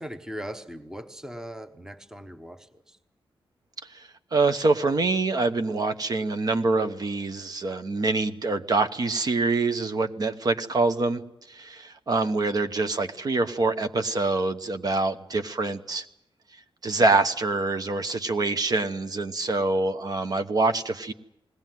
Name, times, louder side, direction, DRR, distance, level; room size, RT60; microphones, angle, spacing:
voice 1, 0.0-3.0, equal, 5° right, 1.1 m, -39 dB
voice 2, 3.9-11.2 11.5-16.1 16.8-21.1, right 3 dB, 45° right, 1.0 m, -25 dB
21.0 x 17.5 x 9.2 m
wide cardioid pair, 170°, 9 cm